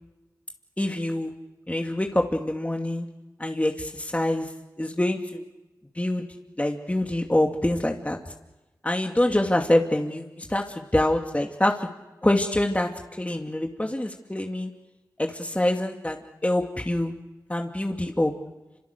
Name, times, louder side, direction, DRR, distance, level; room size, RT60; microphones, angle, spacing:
voice 1, 0.8-1.3 1.7-3.1 3.4-4.5 4.8-5.4 6.0-6.2 6.6-8.2 8.8-11.9 12.2-12.9 13.2-14.7 15.2-17.1 17.5-18.3, left 1 dB, 20° left, 2 dB, 2.6 m, -25 dB
28.0 x 27.0 x 6.8 m, 1.1 s
cardioid pair, 40°, 7 cm